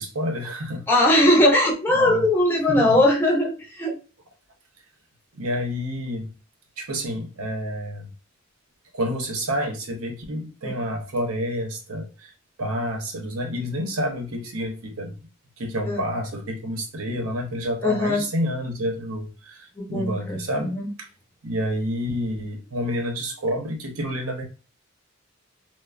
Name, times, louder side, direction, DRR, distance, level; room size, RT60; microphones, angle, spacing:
voice 1, 0.0-0.8 1.9-2.2 2.7-3.0 5.3-6.3 6.8-8.1 8.9-12.3 12.6-15.2 15.6-20.7 21.0-21.1 21.4-24.4, equal, 90° right, 3 dB, 0.8 m, -29 dB
voice 2, 0.9-4.0 10.6-10.7 15.9-16.0 17.8-18.2 19.8-20.9, left 1 dB, 10° left, -1 dB, 0.5 m, -20 dB
3.2 x 2.0 x 2.4 m, 0.33 s
head